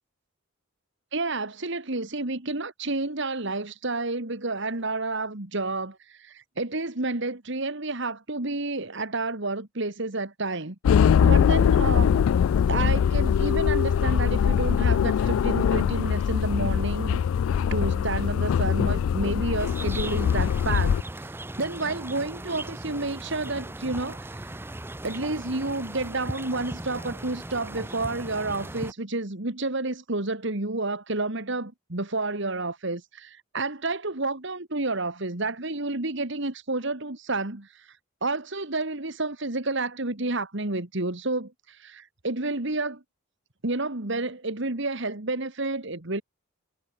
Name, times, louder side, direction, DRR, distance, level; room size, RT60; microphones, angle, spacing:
voice 1, 1.1-10.8 11.0-12.2 12.7-17.3 17.7-24.7 25.0-37.9 38.2-43.0 43.6-46.2, right 2 dB, 60° right, 2.1 m, -30 dB
sound 1, 10.8-21.0, left 7 dB, 75° left, 0.3 m, -22 dB
sound 2, 19.6-28.9, right 1 dB, 10° right, 0.7 m, -38 dB
head